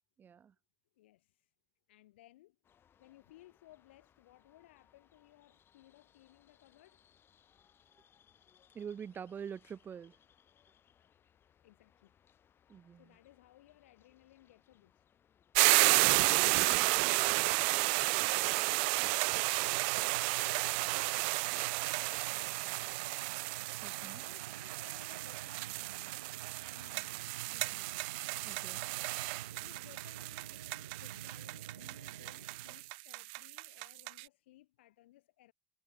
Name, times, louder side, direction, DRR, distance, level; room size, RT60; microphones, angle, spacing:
voice 1, 0.2-0.5 8.7-10.1 12.7-13.1 23.8-24.3 28.4-28.8, right 7 dB, 30° right, 1.3 m, -46 dB
voice 2, 1.0-1.5 1.9-2.6 3.0-7.0 11.6-12.1 12.7-15.0 15.7-20.4 20.6-21.4 21.8-26.2 26.7-28.0 28.3-28.6 29.5-35.5, left 16 dB, 70° left, 4.4 m, -62 dB
sound 1, 2.6-18.0, left 9 dB, 35° left, 5.9 m, -69 dB
sound 2, 15.5-34.2, right 35 dB, 60° right, 0.4 m, -32 dB
sound 3, 19.1-32.9, right 9 dB, 75° right, 1.8 m, -50 dB
figure-of-eight pair, 70°, 6 cm